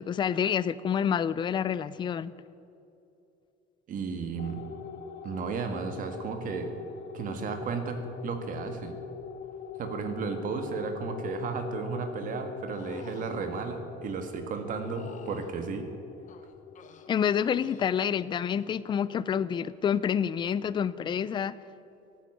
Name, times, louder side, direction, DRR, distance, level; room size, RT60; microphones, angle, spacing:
voice 1, 0.0-2.3 17.1-21.6, left 8 dB, 25° left, 17 dB, 0.4 m, -28 dB
voice 2, 3.9-4.6 5.2-6.7 7.1-9.0 9.8-15.9, right 5 dB, 50° right, 7 dB, 1.7 m, -34 dB
sound 1, 4.4-19.2, left 6 dB, 70° left, 1.1 m, -44 dB
sound 2, 12.7-13.3 14.8-15.5 16.3-17.1 17.6-18.0 18.4-18.8 20.4-20.5, left 7 dB, 45° left, 1.1 m, -47 dB
14.5 x 9.3 x 10.0 m, 2.7 s
cardioid pair, 155°, 18 cm